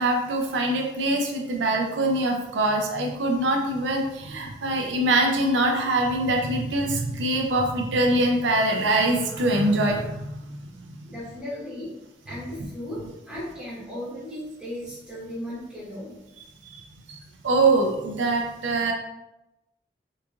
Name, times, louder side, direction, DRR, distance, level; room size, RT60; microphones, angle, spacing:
voice 1, 0.0-11.0 16.7-16.8 17.4-18.9, right 2 dB, 85° right, 2 dB, 0.5 m, -23 dB
voice 2, 11.1-11.9 12.2-16.2, left 1 dB, 5° right, -8 dB, 1.2 m, -36 dB
3.7 x 2.9 x 2.3 m, 0.93 s
head